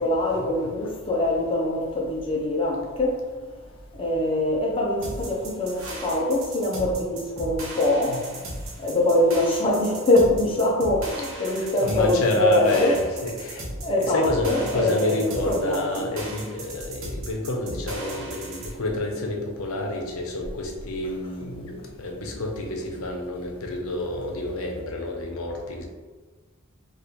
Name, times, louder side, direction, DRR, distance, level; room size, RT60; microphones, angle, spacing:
voice 1, 0.0-3.2 4.0-8.2 8.8-13.0 13.8-16.1, left 1 dB, 25° left, -2 dB, 0.5 m, -23 dB
sound 1, 5.0-18.7, right 1 dB, 70° right, 0.8 m, -37 dB
voice 2, 11.2-13.6 14.0-25.8, left 1 dB, 80° left, 1 dB, 0.6 m, -29 dB
3.0 x 2.4 x 3.7 m, 1.4 s
head